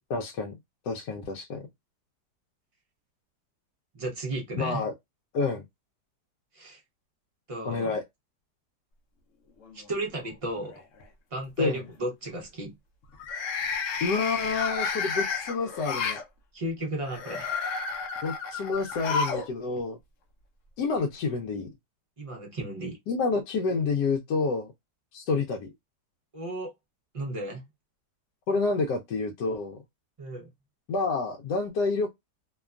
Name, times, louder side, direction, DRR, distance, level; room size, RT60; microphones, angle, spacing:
voice 1, 0.1-0.5 0.8-1.6 4.6-4.9 5.3-5.7 7.7-8.0 11.6-11.8 14.0-16.2 18.2-20.0 20.8-21.7 23.1-24.7 25.1-25.7 28.5-29.8 30.9-32.1, left 4 dB, 80° left, 1.2 m, -28 dB
voice 2, 3.9-4.8 6.5-6.8 7.5-7.9 9.7-10.7 11.3-12.7 16.5-17.6 22.2-23.0 26.3-26.7 27.1-27.6 30.2-30.5, right 1 dB, 45° right, 0.4 m, -34 dB
sound 1, 9.6-10.3 10.6-11.0 13.1-16.2 17.1-19.5 19.8-19.9 21.0-21.1, left 5 dB, 65° left, 0.8 m, -31 dB
2.9 x 2.2 x 2.3 m
omnidirectional pair, 1.8 m